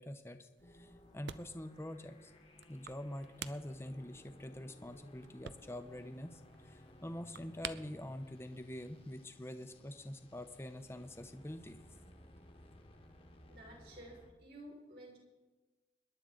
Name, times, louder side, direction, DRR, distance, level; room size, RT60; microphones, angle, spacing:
voice 1, 0.0-2.3 2.7-11.8, left 1 dB, 15° left, 8 dB, 0.7 m, -45 dB
sound 1, 0.6-14.3, left 1 dB, 35° left, 1.2 m, -59 dB
sound 2, 0.6-9.3, right 7 dB, 85° right, 0.5 m, -52 dB
voice 2, 13.5-15.2, right 1 dB, 65° right, -2 dB, 4.9 m, -53 dB
26.0 x 11.0 x 3.8 m, 1.2 s
head